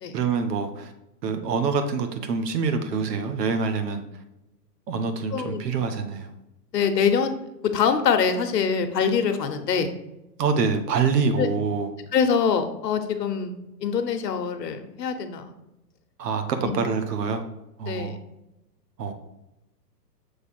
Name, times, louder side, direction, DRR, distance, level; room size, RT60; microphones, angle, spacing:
voice 1, 0.1-0.9 1.2-4.0 4.9-6.3 10.4-11.9 16.2-17.4 17.8-18.2 19.0-19.1, right 5 dB, 70° right, 7 dB, 1.1 m, -25 dB
voice 2, 5.3-5.6 6.7-7.3 7.7-9.9 11.4-11.5 12.1-13.5 13.8-15.5 16.6-16.8 17.8-18.2, left 6 dB, 75° left, 7 dB, 1.0 m, -24 dB
6.8 x 3.3 x 4.4 m, 0.92 s
hypercardioid pair, 140°, 50 cm